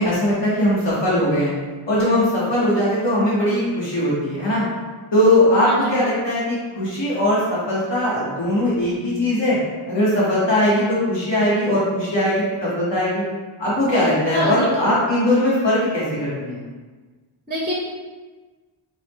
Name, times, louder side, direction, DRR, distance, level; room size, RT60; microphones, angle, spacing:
voice 1, 0.0-1.5 1.9-4.7 5.1-9.6 9.9-13.2 13.6-16.6, left 1 dB, 60° left, -8 dB, 1.2 m, -20 dB
voice 2, 5.6-5.9 14.3-15.0 17.5-17.7, equal, 20° right, -3 dB, 0.5 m, -25 dB
4.4 x 2.1 x 3.5 m, 1.3 s
wide cardioid pair, 115°, 50 cm